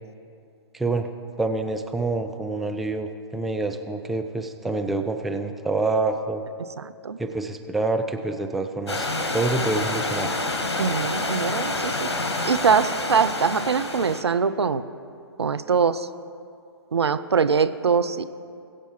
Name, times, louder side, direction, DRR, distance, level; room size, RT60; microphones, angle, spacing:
voice 1, 0.7-1.1 1.4-6.4 7.2-10.3, right 3 dB, ahead, 5 dB, 0.3 m, -27 dB
voice 2, 6.8-7.2 10.8-12.1 12.4-14.8 15.4-16.1 16.9-18.2, right 6 dB, 75° right, 13 dB, 0.5 m, -23 dB
Stream / Liquid, 8.9-14.2, left 2 dB, 75° left, 1.3 m, -28 dB
20.5 x 8.1 x 3.1 m, 2.5 s
figure-of-eight pair, 125°, 14 cm